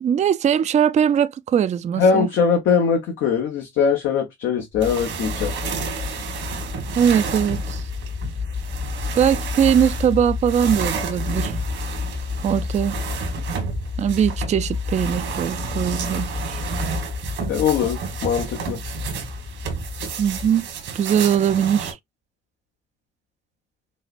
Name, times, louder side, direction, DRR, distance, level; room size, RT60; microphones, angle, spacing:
voice 1, 0.0-2.3 7.0-7.8 9.2-11.5 12.4-13.0 14.0-16.6 20.2-20.7 20.9-22.0, right 8 dB, 35° right, 0.4 m, -20 dB
voice 2, 1.9-5.6 17.5-18.8, left 6 dB, 80° left, 0.9 m, -21 dB
sound 1, 4.7-20.5, left 5 dB, 55° left, 0.9 m, -31 dB
sound 2, 4.8-21.9, right 6 dB, 80° right, 1.5 m, -32 dB
5.2 x 2.1 x 2.4 m
cardioid pair, 90°, 20 cm